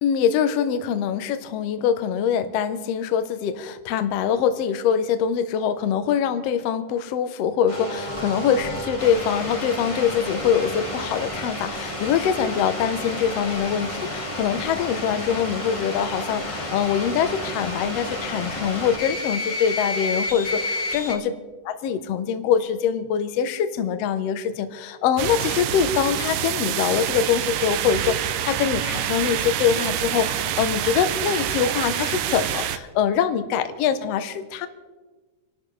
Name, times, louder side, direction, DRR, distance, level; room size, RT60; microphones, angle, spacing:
voice 1, 0.0-21.2 21.6-34.7, left 8 dB, 70° left, 9 dB, 1.6 m, -24 dB
sound 1, 7.7-21.1, left 1 dB, 25° left, 0.7 m, -31 dB
sound 2, 25.2-32.8, right 11 dB, 80° right, 2.3 m, -27 dB
28.0 x 12.5 x 3.3 m, 1.3 s
omnidirectional pair, 3.8 m